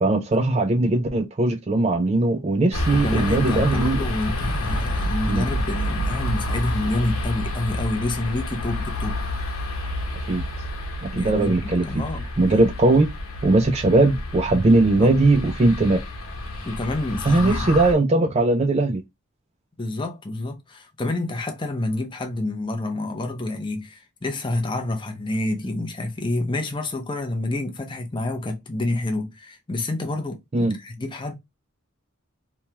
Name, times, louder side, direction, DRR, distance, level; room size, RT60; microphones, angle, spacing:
voice 1, 0.0-4.0 5.3-5.5 10.3-10.4 11.0-11.9 12.4-13.1 13.4-16.0 17.3-19.0 30.5-30.8, right 2 dB, 30° right, 0.4 m, -19 dB
sound 1, 2.7-17.9, left 1 dB, 85° left, 1.1 m, -29 dB
voice 2, 2.9-9.2 11.1-12.3 15.0-15.2 16.6-17.7 19.8-31.3, left 2 dB, 20° left, 0.6 m, -28 dB
3.1 x 2.3 x 2.8 m
head